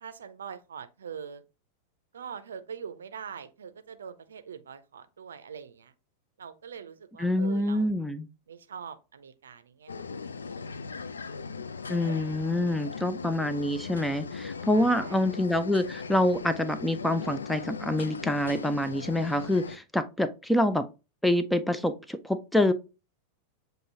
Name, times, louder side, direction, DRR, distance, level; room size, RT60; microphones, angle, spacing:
voice 1, 0.0-1.4 2.1-5.9 6.4-7.9 8.5-10.6 14.7-15.2, right 7 dB, 65° right, 0.5 m, -43 dB
voice 2, 7.2-8.3 11.9-20.9 21.2-22.7, left 1 dB, 5° left, 0.4 m, -26 dB
sound 1, 9.9-19.8, left 5 dB, 70° left, 0.3 m, -39 dB
7.4 x 2.7 x 2.6 m
figure-of-eight pair, 90°, 0 cm